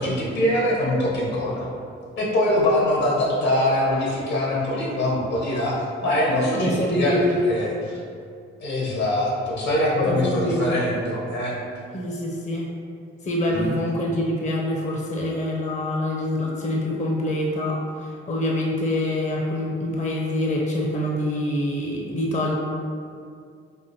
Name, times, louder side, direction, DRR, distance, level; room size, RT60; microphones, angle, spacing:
voice 1, 0.0-1.7 2.2-7.2 7.4-8.0 8.6-11.5 13.5-13.7, left 1 dB, 65° left, -4 dB, 1.3 m, -23 dB
voice 2, 6.5-7.4 10.1-10.9 11.9-12.7 13.2-22.5, left 1 dB, 25° left, -2 dB, 0.7 m, -25 dB
5.3 x 2.5 x 2.8 m, 2.3 s
hypercardioid pair, 40°, 30 cm